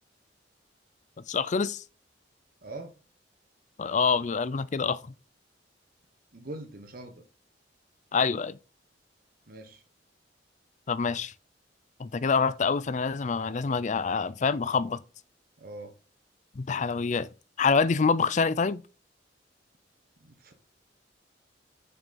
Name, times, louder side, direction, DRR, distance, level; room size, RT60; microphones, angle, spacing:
voice 1, 1.3-1.8 3.8-5.0 8.1-8.6 10.9-11.3 12.0-15.0 16.6-17.3 17.6-18.8, left 5 dB, 40° left, 0.4 m, -26 dB
voice 2, 2.6-2.9 6.3-7.2 9.5-9.8 15.6-15.9 20.2-20.5, right 2 dB, 50° right, 1.2 m, -42 dB
7.0 x 5.9 x 4.2 m
head